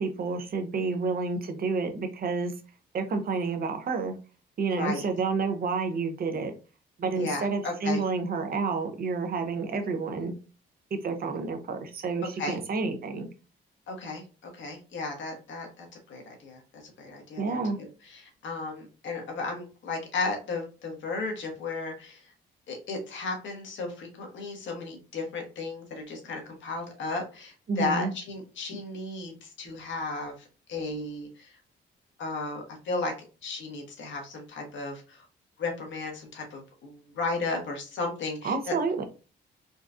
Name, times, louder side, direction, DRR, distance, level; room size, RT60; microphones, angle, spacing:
voice 1, 0.0-2.5 2.9-4.1 4.6-6.5 7.0-10.3 10.9-13.3 17.4-17.8 27.7-28.1 38.4-39.0, right 4 dB, 50° right, 6 dB, 0.8 m, -29 dB
voice 2, 7.2-8.0 12.4-12.6 13.9-22.3 22.7-31.6 32.2-33.1 33.4-35.2 35.6-38.5, left 3 dB, 70° left, 2 dB, 1.3 m, -35 dB
3.9 x 2.3 x 2.5 m, 0.33 s
cardioid pair, 90°, 20 cm